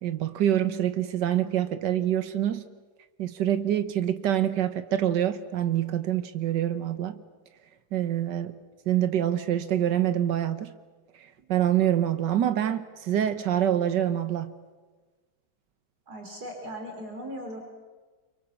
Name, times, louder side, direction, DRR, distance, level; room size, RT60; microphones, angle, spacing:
voice 1, 0.0-2.6 3.2-7.2 7.9-8.6 8.9-10.7 11.5-14.5, right 11 dB, 85° right, 1.7 m, -26 dB
voice 2, 16.1-17.6, equal, 65° right, 4.1 m, -38 dB
29.5 x 24.5 x 7.1 m
omnidirectional pair, 1.8 m